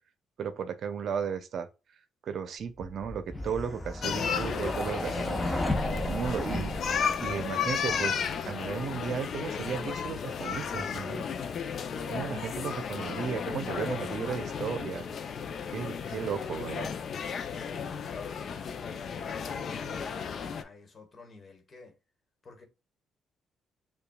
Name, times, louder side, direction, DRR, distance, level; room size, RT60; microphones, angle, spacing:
voice 1, 0.4-1.7 2.2-5.4 6.0-6.7 7.2-11.3 12.1-15.1 15.7-16.9, right 7 dB, 65° right, 0.6 m, -35 dB
sound 1, 2.8-7.7, left 1 dB, 15° left, 0.9 m, -34 dB
sound 2, 4.0-20.6, left 6 dB, 55° left, 0.5 m, -34 dB
voice 2, 17.6-22.0 22.4-22.7, left 3 dB, 40° left, 1.4 m, -51 dB
6.7 x 2.3 x 2.3 m
cardioid pair, 90°, 0 cm